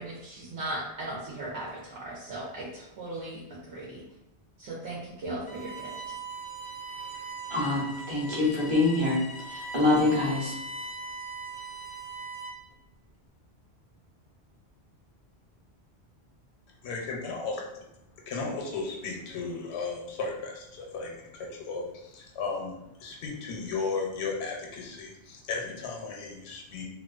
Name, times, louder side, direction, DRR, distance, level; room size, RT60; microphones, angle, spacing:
voice 1, 0.0-4.0 4.6-5.9, right 1 dB, 80° right, -5 dB, 0.9 m, -37 dB
Bowed string instrument, 5.5-12.7, right 3 dB, 55° left, 0.3 m, -40 dB
voice 2, 7.5-10.6, left 2 dB, 30° right, -6 dB, 0.7 m, -25 dB
voice 3, 16.8-17.5 18.3-26.9, left 4 dB, 80° left, 0 dB, 0.8 m, -35 dB
2.4 x 2.2 x 2.3 m, 0.85 s
omnidirectional pair, 1.1 m